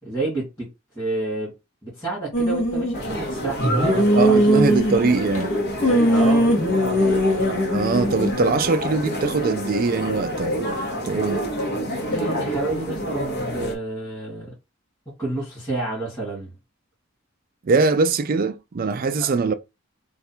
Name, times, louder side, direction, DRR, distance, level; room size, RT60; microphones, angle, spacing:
voice 1, 0.0-0.7 1.0-1.5 1.8-4.8 6.1-6.5 12.1-14.5 15.2-16.5 19.2-19.3, right 2 dB, 15° left, 1.9 m, -29 dB
sound 1, 2.3-3.0 3.6-5.4 5.8-8.3, equal, 35° left, 1.6 m, -20 dB
sound 2, 2.9-13.8, equal, 55° left, 1.1 m, -28 dB
voice 2, 4.2-5.5 7.7-10.8 11.0-11.4 17.6-19.5, right 4 dB, 45° right, 0.4 m, -22 dB
3.2 x 2.4 x 4.4 m
head